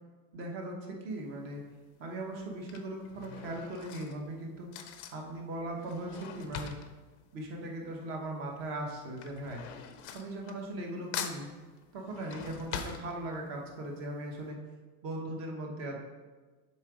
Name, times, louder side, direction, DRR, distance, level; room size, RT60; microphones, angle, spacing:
voice 1, 0.3-1.6 2.0-4.7 5.1-6.8 7.3-9.6 10.1-11.5 11.9-14.6 15.0-16.0, right 1 dB, 30° right, 1 dB, 1.0 m, -39 dB
Drawer open or close / Cutlery silverware, 1.1-1.5 2.4-8.2 8.5-10.9 11.1-13.7 14.1-14.2 14.4-14.5, left 8 dB, 45° left, 0.6 m, -43 dB
7.3 x 3.9 x 4.9 m, 1.3 s
supercardioid pair, 170°, 45 cm